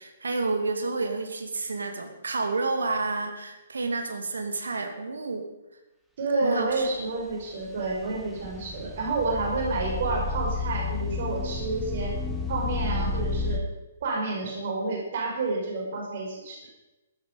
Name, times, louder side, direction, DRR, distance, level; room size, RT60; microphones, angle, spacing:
voice 1, 0.0-5.5 6.4-7.1, right 3 dB, 70° right, 5 dB, 2.5 m, -30 dB
voice 2, 6.2-12.1 12.5-13.6 14.0-16.6, right 3 dB, 50° right, 0 dB, 5.2 m, -29 dB
sound 1, 6.8-13.6, left 3 dB, ahead, 1.7 m, -31 dB
15.0 x 12.0 x 5.3 m, 1.0 s
figure-of-eight pair, 125°, 0 cm